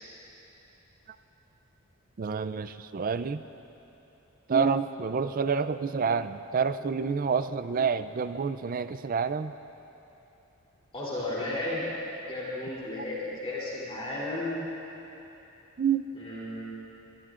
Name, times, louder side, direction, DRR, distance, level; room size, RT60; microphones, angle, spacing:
voice 1, 2.2-3.4 4.5-9.5 15.8-16.1, right 5 dB, 40° right, 12 dB, 0.4 m, -28 dB
voice 2, 10.9-11.9 12.3-14.7 16.2-16.6, left 1 dB, 25° left, -7 dB, 3.1 m, -33 dB
24.0 x 21.0 x 2.5 m, 3.0 s
head